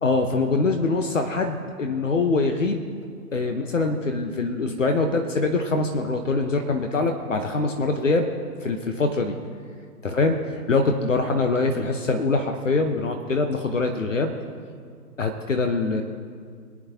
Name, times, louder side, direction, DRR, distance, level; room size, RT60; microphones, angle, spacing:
voice 1, 0.0-2.8 3.3-8.3 8.6-9.4 10.0-10.4 10.7-14.3 15.2-16.0, left 3 dB, 55° left, 5 dB, 1.2 m, -23 dB
25.5 x 8.5 x 2.9 m, 2.1 s
figure-of-eight pair, 140°, 46 cm